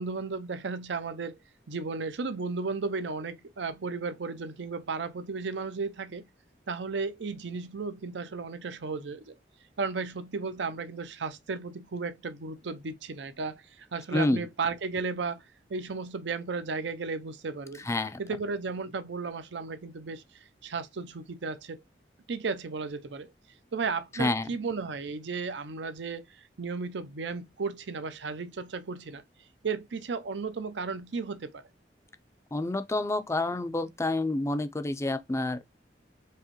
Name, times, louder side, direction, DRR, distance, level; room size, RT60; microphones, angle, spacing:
voice 1, 0.0-1.4 1.7-6.3 6.7-9.3 9.8-15.4 15.7-17.9 18.2-20.2 20.6-21.8 22.3-23.3 23.7-26.3 26.6-29.2 29.6-31.6, right 4 dB, 80° right, 0.6 m, -34 dB
voice 2, 14.1-14.4 17.9-18.2 24.2-24.5 32.5-35.6, left 2 dB, 15° left, 0.5 m, -28 dB
4.7 x 2.9 x 2.9 m
head